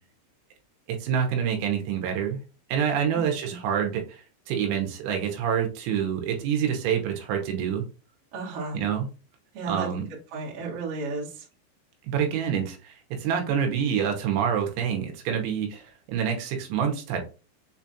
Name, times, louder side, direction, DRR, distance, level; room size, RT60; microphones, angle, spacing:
voice 1, 1.0-2.4 2.7-7.8 8.7-9.1 9.7-10.0 12.0-17.2, right 8 dB, 80° right, 3 dB, 3.2 m, -27 dB
voice 2, 3.1-3.6 8.3-8.8 9.5-9.9 10.3-11.5, right 4 dB, 60° right, -5 dB, 1.6 m, -34 dB
7.0 x 2.4 x 2.7 m, 0.32 s
omnidirectional pair, 5.5 m